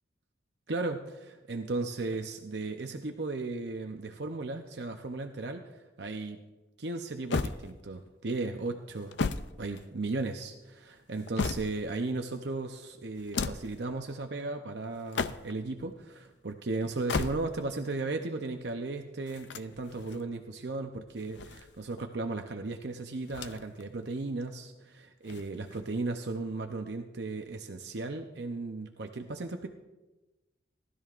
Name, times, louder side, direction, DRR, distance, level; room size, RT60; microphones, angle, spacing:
voice 1, 0.7-5.7 6.0-6.4 6.8-9.1 9.6-29.7, right 3 dB, 65° right, 4 dB, 0.7 m, -36 dB
sound 1, 7.3-8.1 8.9-10.3 10.9-12.0 13.1-13.8 14.9-15.7 16.9-17.8 19.3-20.2 21.1-22.1 23.3-23.8 24.2-24.3 25.2-26.0, left 4 dB, 70° left, 0.5 m, -35 dB
18.5 x 12.5 x 2.5 m, 1.1 s
head